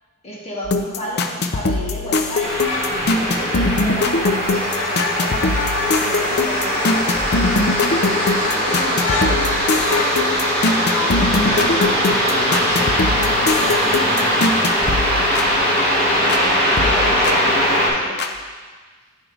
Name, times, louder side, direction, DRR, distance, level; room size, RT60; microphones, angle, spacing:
voice 1, 0.2-2.5 3.1-5.6 5.9-7.2 8.0-9.5 16.1-18.2, equal, 30° left, -5 dB, 1.5 m, -32 dB
sound 1, 0.6-16.5 16.8-18.3, left 3 dB, 50° left, 0.5 m, -23 dB
sound 2, 2.4-17.9, equal, 5° left, 2.4 m, -20 dB
sound 3, 2.6-3.0 4.4-10.3 10.9-11.2, left 3 dB, 90° left, 0.9 m, -28 dB
voice 2, 11.0-14.7, equal, 35° right, -6 dB, 1.8 m, -31 dB
10.5 x 4.5 x 3.9 m, 1.4 s
head